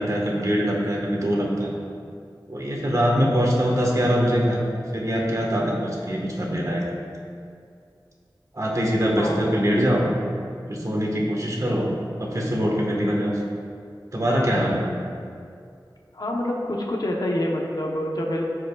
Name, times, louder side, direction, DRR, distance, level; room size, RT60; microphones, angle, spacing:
voice 1, 0.0-1.8 2.5-4.6 4.9-6.8 8.5-10.0 10.7-11.9 12.2-13.3 14.1-14.8, equal, 45° right, -2 dB, 1.5 m, -23 dB
voice 2, 16.1-18.4, left 1 dB, 60° left, -2 dB, 1.0 m, -27 dB
14.5 x 5.0 x 2.4 m, 2.3 s
wide cardioid pair, 60°, 8 cm